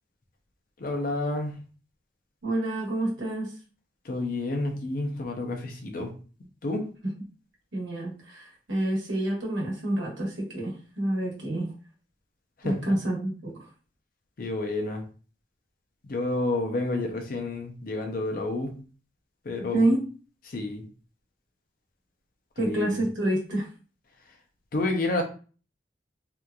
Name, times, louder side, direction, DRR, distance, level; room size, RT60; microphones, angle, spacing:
voice 1, 0.8-1.6 4.1-6.1 6.6-6.9 12.6-12.9 14.4-15.0 16.0-18.8 19.5-19.8 20.5-20.8 22.6-22.9 24.7-25.2, left 2 dB, 50° left, 4 dB, 0.5 m, -29 dB
voice 2, 2.4-3.6 7.0-7.1 7.7-11.7 12.6-13.7 19.7-20.0 22.6-23.7, right 1 dB, 90° right, -3 dB, 1.1 m, -28 dB
2.8 x 2.4 x 2.2 m, 0.38 s
head